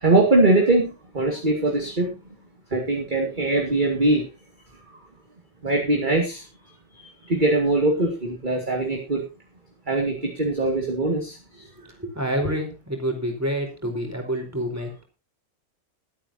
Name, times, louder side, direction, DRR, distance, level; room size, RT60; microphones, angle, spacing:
voice 1, 0.0-2.1 2.7-4.2 5.6-6.4 7.0-9.2 9.9-11.4 12.4-12.5, right 2 dB, 25° right, 1 dB, 2.5 m, -22 dB
voice 2, 12.0-15.0, equal, 10° right, 3 dB, 4.3 m, -28 dB
22.0 x 9.0 x 2.8 m, 0.29 s
omnidirectional pair, 1.9 m